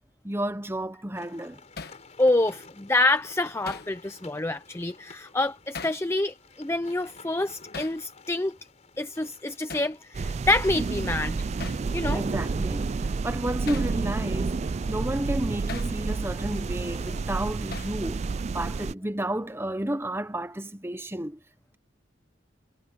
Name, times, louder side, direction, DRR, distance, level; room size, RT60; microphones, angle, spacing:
voice 1, 0.2-1.6 12.1-18.3 18.5-21.4, right 1 dB, 15° right, 1.0 m, -32 dB
sound 1, 1.1-18.4, left 3 dB, 35° left, 4.5 m, -53 dB
Hammer, 1.8-2.0 3.7-3.9 5.7-6.1 7.7-8.0 9.7-10.0 11.6-11.9 13.7-13.9 15.7-16.0 17.7-18.0, left 4 dB, 55° left, 1.3 m, -39 dB
voice 2, 2.2-8.6 9.0-11.5 11.9-12.2, left 2 dB, 15° left, 0.6 m, -27 dB
sound 2, 10.1-18.9, right 4 dB, 35° right, 0.3 m, -30 dB
head